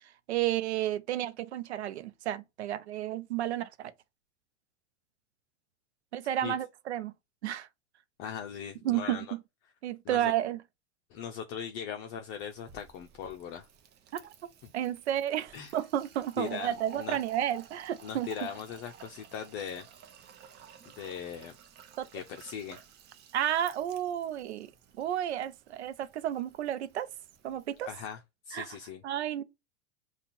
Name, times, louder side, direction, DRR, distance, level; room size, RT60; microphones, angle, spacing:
voice 1, 0.3-3.9 6.1-7.1 7.4-7.7 8.8-9.4 9.8-10.6 14.2-14.3 14.7-18.3 22.0-22.1 23.3-24.7 25.0-27.1 27.4-27.9 28.5-28.7 29.0-29.4, right 11 dB, 65° right, 0.7 m, -32 dB
voice 2, 8.2-9.2 10.0-10.3 11.1-13.7 15.5-15.7 16.4-17.2 18.0-19.9 21.0-21.5 22.1-22.8 27.9-28.2 28.5-29.0, left 8 dB, 35° left, 0.7 m, -39 dB
Fill (with liquid), 12.3-28.1, right 8 dB, 30° right, 0.8 m, -53 dB
5.2 x 2.5 x 4.2 m
hypercardioid pair, 100°, 36 cm